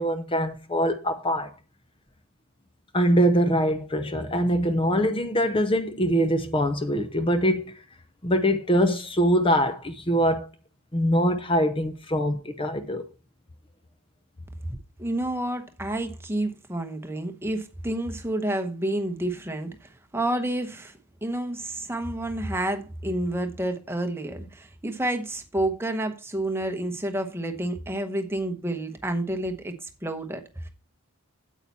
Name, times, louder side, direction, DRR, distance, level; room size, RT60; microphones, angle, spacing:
voice 1, 0.0-1.5 2.9-7.7 8.2-10.5 10.9-13.0, equal, 25° left, 0.7 m, -23 dB
voice 2, 14.7-30.7, right 1 dB, 10° right, 1.0 m, -30 dB
8.8 x 8.3 x 4.2 m
head